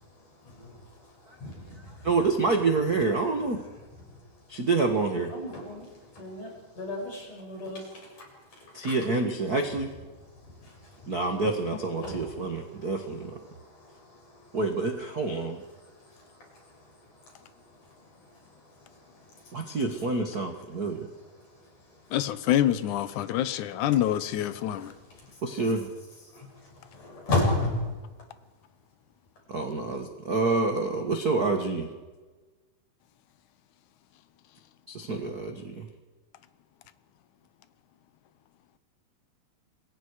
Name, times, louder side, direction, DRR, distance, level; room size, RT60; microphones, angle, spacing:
voice 1, 1.4-1.8 5.3-5.9 6.2-6.5 6.8-7.8 8.8-8.9 12.0-12.2 26.3-26.5 26.9-27.8, left 2 dB, 50° left, -1 dB, 8.2 m, -30 dB
voice 2, 2.0-3.6 4.5-5.3 8.7-9.9 11.1-13.4 14.5-15.6 19.5-21.1 25.4-25.9 29.5-31.9 34.9-35.9, right 3 dB, 65° right, 5 dB, 0.9 m, -27 dB
voice 3, 22.1-24.9, left 12 dB, 70° left, 13 dB, 2.0 m, -26 dB
27.5 x 21.5 x 4.9 m, 1.3 s
omnidirectional pair, 4.5 m